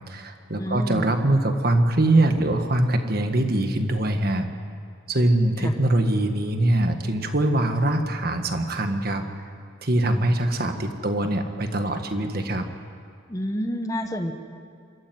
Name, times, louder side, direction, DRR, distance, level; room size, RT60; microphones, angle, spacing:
voice 1, 0.1-4.5 5.1-9.3 9.8-12.7, right 1 dB, 45° right, 6 dB, 1.7 m, -23 dB
voice 2, 0.6-1.1 5.6-5.7 13.3-14.3, equal, 15° left, 5 dB, 1.2 m, -29 dB
26.0 x 14.0 x 9.5 m, 2.4 s
head